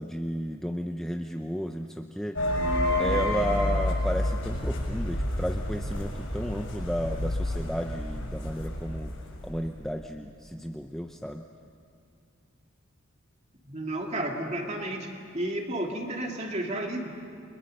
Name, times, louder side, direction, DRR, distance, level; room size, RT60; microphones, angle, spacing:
voice 1, 0.0-2.4 3.0-9.1 9.4-11.4, equal, ahead, 3 dB, 0.6 m, -33 dB
sound 1, 2.4-9.8, left 1 dB, 65° left, 6.8 m, -29 dB
voice 2, 13.6-15.1 15.3-17.1, right 1 dB, 30° right, 1 dB, 2.6 m, -32 dB
30.0 x 23.5 x 6.6 m, 2.3 s
head